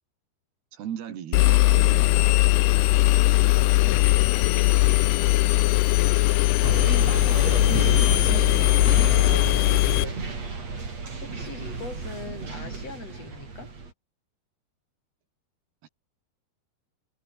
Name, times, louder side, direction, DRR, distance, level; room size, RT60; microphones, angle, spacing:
voice 1, 0.7-2.4 7.6-8.8 15.8-15.9, right 9 dB, 75° right, 4.5 m, -37 dB
Engine, 1.3-10.0, left 19 dB, 80° left, 2.7 m, -19 dB
voice 2, 3.6-5.5 9.0-10.7 11.2-13.7, left 4 dB, 40° left, 4.8 m, -42 dB
sound 1, 6.6-13.9, right 4 dB, 40° right, 6.1 m, -32 dB
omnidirectional pair, 4.7 m